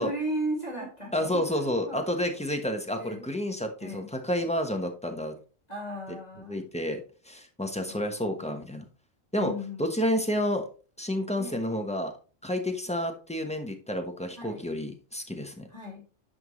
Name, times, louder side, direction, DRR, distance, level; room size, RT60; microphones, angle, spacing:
voice 1, 0.0-2.0 2.9-3.3 3.8-4.1 5.7-6.6 7.9-8.0 8.4-8.6 9.4-9.8 11.4-11.6 14.4-14.6 15.7-16.1, right 1 dB, 30° left, -1 dB, 2.5 m, -36 dB
voice 2, 1.1-5.3 6.5-7.0 7.2-8.8 9.3-9.5 9.8-10.7 11.0-12.1 12.4-15.7, left 1 dB, 5° left, 4 dB, 1.0 m, -30 dB
10.5 x 5.4 x 3.1 m, 0.37 s
omnidirectional pair, 1.3 m